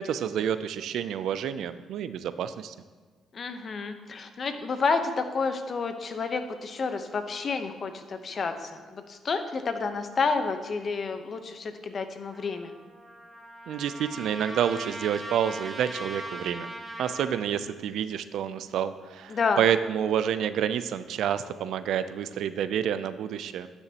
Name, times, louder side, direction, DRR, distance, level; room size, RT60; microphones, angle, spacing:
voice 1, 0.0-2.7 13.7-16.7 17.0-23.7, right 9 dB, 80° right, 13 dB, 0.4 m, -29 dB
voice 2, 3.3-12.7 19.3-19.6, left 4 dB, 45° left, 8 dB, 0.9 m, -30 dB
Trumpet, 12.3-17.4, right 1 dB, 10° right, 1.4 m, -40 dB
11.5 x 7.0 x 2.9 m, 1.5 s
cardioid pair, 90°, 0 cm